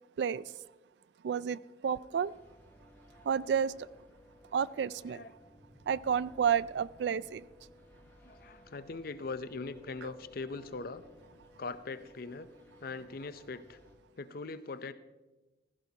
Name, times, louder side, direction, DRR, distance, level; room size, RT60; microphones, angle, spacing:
voice 1, 1.2-2.3 3.3-3.7 4.5-5.2 5.9-7.4, right 7 dB, 65° right, 19 dB, 0.3 m, -30 dB
sound 1, 2.1-13.9, left 1 dB, 10° left, 1.9 m, -58 dB
voice 2, 8.2-11.0 11.6-12.5 12.8-13.8 14.2-14.9, left 3 dB, 55° left, 13 dB, 0.6 m, -41 dB
16.0 x 14.5 x 2.8 m, 1.1 s
head